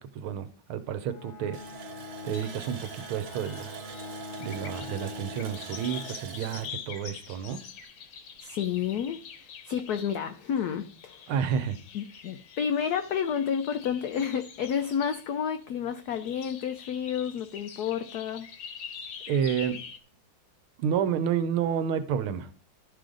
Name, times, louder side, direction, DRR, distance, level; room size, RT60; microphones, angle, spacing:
voice 1, 0.1-1.6 2.2-3.9 4.4-7.6 11.3-11.8 19.3-19.8 20.8-22.5, right 8 dB, 80° right, 1.6 m, -30 dB
Bowed string instrument, 1.0-6.8, left 3 dB, 50° left, 1.1 m, -44 dB
Water tap faucet, 1.5-8.0 8.4-8.5 8.9-9.1, right 8 dB, 60° right, 1.1 m, -44 dB
sound 1, 2.3-15.5 16.0-20.0, left 7 dB, 70° left, 1.7 m, -46 dB
voice 2, 8.4-11.3 11.9-18.5, left 8 dB, 90° left, 0.8 m, -30 dB
12.5 x 5.0 x 3.8 m
omnidirectional pair, 2.3 m